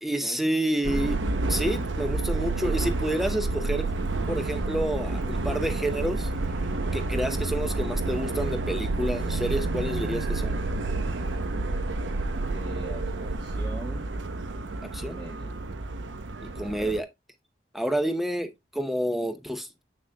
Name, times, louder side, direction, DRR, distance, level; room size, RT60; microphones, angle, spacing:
voice 1, 0.0-1.2 1.5-3.9 4.3-6.3 6.9-10.6 14.9-15.2 16.6-17.1 17.7-19.7, right 1 dB, ahead, 0.6 m, -29 dB
Subway metro underground, 0.8-17.0, right 2 dB, 85° right, 0.8 m, -29 dB
voice 2, 12.5-14.0 15.1-15.6 16.6-16.9, right 2 dB, 30° right, 1.8 m, -41 dB
7.6 x 6.1 x 2.2 m
head